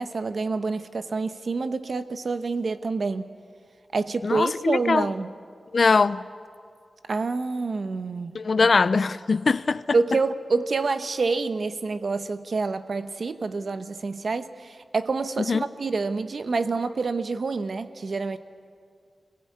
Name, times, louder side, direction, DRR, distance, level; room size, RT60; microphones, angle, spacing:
voice 1, 0.0-3.3 3.9-5.3 7.1-8.4 9.9-18.4, right 4 dB, 55° right, 1.0 m, -27 dB
voice 2, 4.2-5.1 5.7-6.2 8.3-9.8 15.5-15.6, left 4 dB, 50° left, 0.5 m, -21 dB
25.0 x 20.5 x 8.5 m
wide cardioid pair, 110°, 0 cm